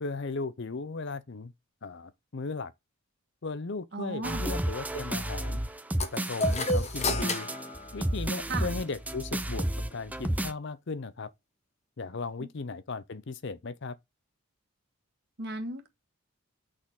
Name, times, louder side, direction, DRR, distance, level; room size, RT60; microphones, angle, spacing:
voice 1, 0.0-1.5 1.8-2.7 3.4-5.6 6.1-7.5 7.9-11.3 12.0-14.0, left 4 dB, 55° left, 0.6 m, -37 dB
voice 2, 3.9-4.4 8.5-8.7 15.4-15.9, right 2 dB, 50° right, 1.4 m, -35 dB
sound 1, 4.2-10.5, right 1 dB, 5° right, 0.5 m, -31 dB
sound 2, 6.0-8.7, left 2 dB, 30° left, 1.0 m, -32 dB
6.2 x 4.3 x 5.4 m
head